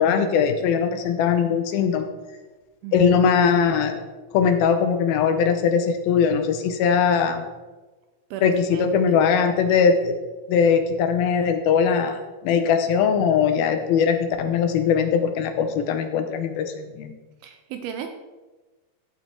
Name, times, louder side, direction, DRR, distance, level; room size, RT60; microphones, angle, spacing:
voice 1, 0.0-2.1 2.9-4.0 4.3-7.4 8.4-10.1 10.5-17.1, left 6 dB, 75° left, 7 dB, 2.4 m, -20 dB
voice 2, 8.3-9.2 17.4-18.1, right 9 dB, 80° right, 6 dB, 2.3 m, -35 dB
14.5 x 5.0 x 4.5 m, 1.2 s
omnidirectional pair, 4.7 m